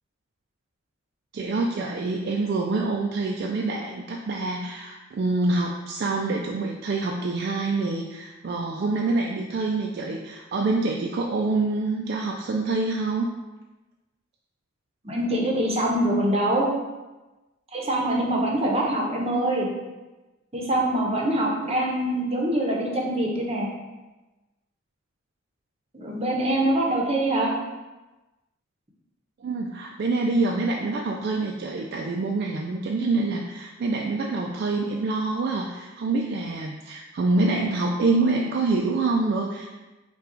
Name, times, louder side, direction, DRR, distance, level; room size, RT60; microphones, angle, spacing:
voice 1, 1.3-13.3 29.4-39.7, right 3 dB, 50° right, 0 dB, 0.3 m, -26 dB
voice 2, 15.0-16.7 17.7-19.7 20.5-23.7 25.9-27.5, right 1 dB, 30° right, -2 dB, 0.7 m, -24 dB
5.5 x 2.3 x 3.8 m, 1.1 s
head